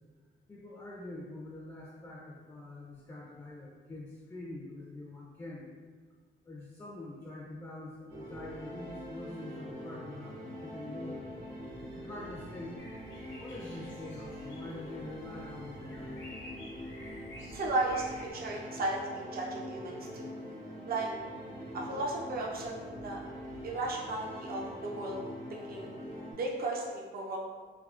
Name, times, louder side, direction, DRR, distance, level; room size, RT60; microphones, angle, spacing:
voice 1, 0.5-5.7 6.4-11.3 11.9-12.8 13.3-16.5, left 2 dB, 15° left, -3 dB, 0.4 m, -45 dB
sound 1, 8.1-26.3, equal, 75° right, 1.3 m, -44 dB
sound 2, 12.8-18.3, left 2 dB, 75° left, 1.0 m, -51 dB
voice 2, 17.5-18.0 18.3-20.3 20.9-21.1 21.7-23.2 23.6-25.2 25.5-25.9 26.4-27.4, right 2 dB, 50° right, -2 dB, 0.5 m, -35 dB
3.5 x 2.0 x 2.4 m, 1.5 s
cardioid pair, 85°, 20 cm